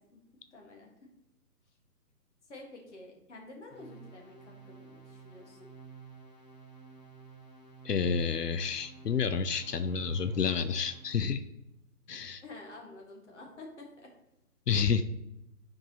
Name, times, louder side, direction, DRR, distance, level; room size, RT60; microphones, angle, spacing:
voice 1, 0.5-0.9 2.5-5.7 12.1-14.1, left 2 dB, 50° left, 0 dB, 1.6 m, -49 dB
sound 1, 3.7-11.3, right 5 dB, 25° left, 1.4 m, -52 dB
voice 2, 7.8-11.4 12.1-12.4 14.7-15.0, left 6 dB, 90° left, 10 dB, 0.6 m, -29 dB
9.6 x 4.7 x 2.8 m, 0.91 s
figure-of-eight pair, 140°, 46 cm